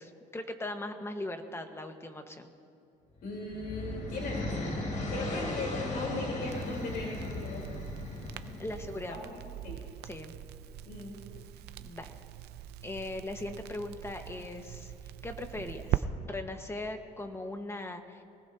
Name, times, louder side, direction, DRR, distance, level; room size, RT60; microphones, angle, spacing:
voice 1, 0.0-2.5 8.6-9.2 10.0-10.3 11.8-12.1 12.8-14.9 15.2-18.2, left 2 dB, 15° left, 5 dB, 1.4 m, -39 dB
voice 2, 3.2-4.7 5.1-7.7 8.5-8.6 9.1-9.2 9.6-9.8 10.9-11.2, left 2 dB, 65° left, -1 dB, 3.9 m, -38 dB
sound 1, 3.2-9.3, left 2 dB, 45° left, 3.1 m, -37 dB
Crackle, 6.5-16.0, right 14 dB, 75° right, 0.6 m, -41 dB
24.5 x 19.0 x 2.9 m, 2.6 s
cardioid pair, 110°, 17 cm